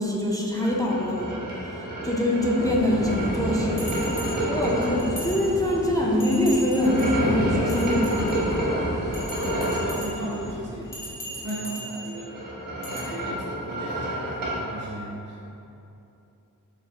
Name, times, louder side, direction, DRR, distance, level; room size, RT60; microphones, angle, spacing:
voice 1, 0.0-1.4 1.7-8.1 8.4-8.6, left 1 dB, 10° left, -4 dB, 0.4 m, -24 dB
sound 1, 0.6-5.1 6.7-10.0 12.1-14.7, right 1 dB, 85° right, 1.1 m, -29 dB
sound 2, 2.6-11.4, left 1 dB, 50° left, 0.6 m, -34 dB
Bell, 3.8-5.8 6.2-7.2 7.6-8.6 9.1-10.4 10.8-12.2 12.8-13.0, equal, 70° left, 1.2 m, -39 dB
voice 2, 9.5-10.9 11.3-12.5 12.8-15.5, right 1 dB, 50° right, -5 dB, 0.6 m, -36 dB
7.1 x 2.4 x 2.3 m, 2.8 s
wide cardioid pair, 95°, 33 cm